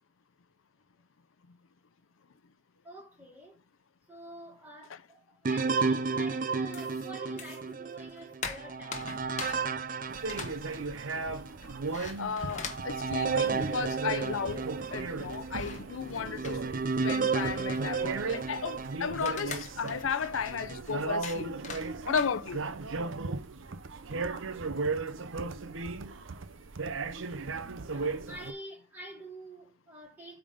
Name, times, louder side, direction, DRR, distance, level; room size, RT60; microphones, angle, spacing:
voice 1, 2.7-3.6 4.1-9.2 11.6-11.7 27.8-30.4, right 1 dB, 10° right, 3.5 m, -47 dB
sound 1, 5.4-11.2 11.7-11.8 12.4-19.6 20.2-20.8, right 4 dB, 40° right, 0.5 m, -33 dB
sound 2, 6.7-7.7 8.0-14.0 14.2-14.3 14.5-22.9, left 5 dB, 35° left, 1.1 m, -44 dB
sound 3, 10.1-28.5, right 3 dB, 75° right, 0.7 m, -37 dB
voice 2, 12.2-16.6 17.0-21.6 22.1-22.6, left 6 dB, 85° left, 0.6 m, -34 dB
8.5 x 3.6 x 5.2 m
head